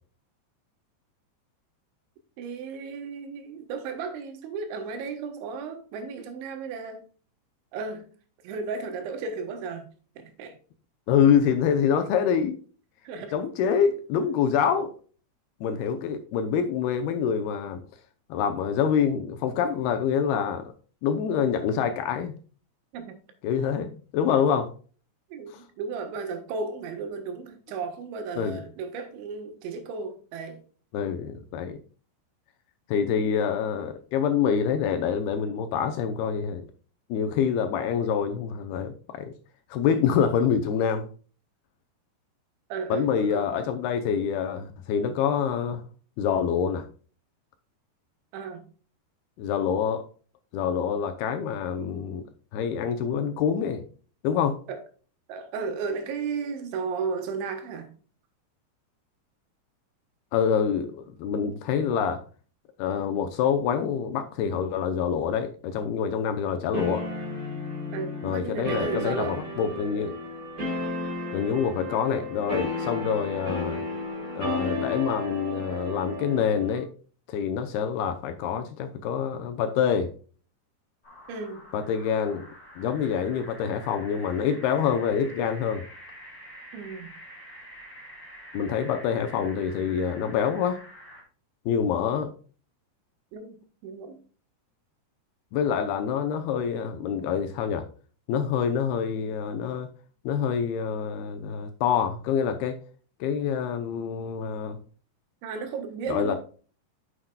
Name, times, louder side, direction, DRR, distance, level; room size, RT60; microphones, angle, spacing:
voice 1, 2.4-7.0 7.7-8.1 8.4-9.9 10.2-10.6 13.1-13.4 22.9-23.2 25.3-30.6 42.7-43.5 48.3-48.7 54.7-54.8 55.3-57.9 67.9-69.4 81.3-81.7 86.7-87.1 93.3-94.2 105.4-106.4, right 5 dB, 90° right, 3.7 m, -34 dB
voice 2, 11.1-12.6 13.3-14.9 15.6-17.8 18.3-20.7 21.0-22.3 23.4-24.7 28.4-28.6 30.9-31.8 32.9-36.7 37.1-39.3 39.7-41.1 42.9-45.8 46.2-46.9 49.4-50.0 50.5-52.2 52.5-53.8 54.2-54.6 60.3-62.2 62.8-67.1 68.2-70.2 71.3-73.8 74.4-76.9 77.3-80.1 81.7-82.5 82.8-85.8 88.5-90.8 91.7-92.3 95.5-97.9 98.3-99.9 100.3-102.8 103.2-104.8 106.1-106.4, left 7 dB, 80° left, 2.4 m, -26 dB
sound 1, 66.7-76.8, left 1 dB, 50° right, 1.0 m, -33 dB
sound 2, 81.0-91.2, equal, 25° left, 2.9 m, -47 dB
9.5 x 8.1 x 2.3 m
omnidirectional pair, 5.1 m